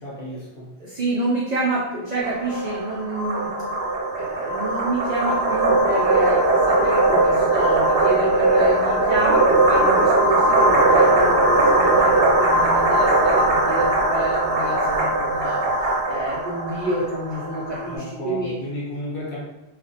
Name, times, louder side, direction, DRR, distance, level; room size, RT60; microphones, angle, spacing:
voice 1, 0.0-0.7 17.8-19.4, left 1 dB, 55° left, -5 dB, 0.9 m, -33 dB
voice 2, 0.8-3.5 4.1-18.5, right 2 dB, 75° right, -6 dB, 0.4 m, -28 dB
sound 1, 2.2-17.9, right 2 dB, 60° right, 0.8 m, -19 dB
2.4 x 2.0 x 2.6 m, 0.93 s
omnidirectional pair, 1.3 m